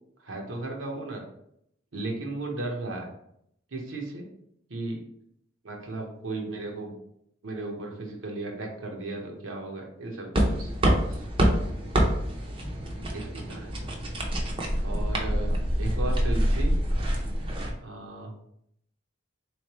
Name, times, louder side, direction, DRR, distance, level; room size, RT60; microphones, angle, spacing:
voice 1, 0.2-1.2 1.9-3.1 3.7-4.2 4.7-5.0 5.6-6.9 7.4-10.7 11.0-11.2 13.1-13.8 14.8-15.5 15.8-16.7 17.8-18.3, right 2 dB, 80° right, 1 dB, 0.9 m, -35 dB
Queneau Travaux eloingement, 10.3-17.7, equal, 25° right, 0.6 m, -26 dB
3.7 x 3.2 x 3.0 m, 0.73 s
head